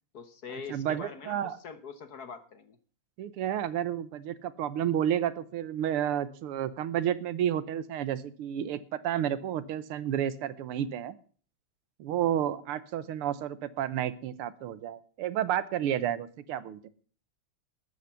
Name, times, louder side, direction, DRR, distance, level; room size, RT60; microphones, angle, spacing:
voice 1, 0.1-2.8, left 5 dB, 50° left, 11 dB, 1.4 m, -43 dB
voice 2, 0.7-1.6 3.2-11.2 12.0-16.9, right 10 dB, 85° right, 16 dB, 1.8 m, -31 dB
13.0 x 9.5 x 5.7 m, 0.43 s
omnidirectional pair, 2.4 m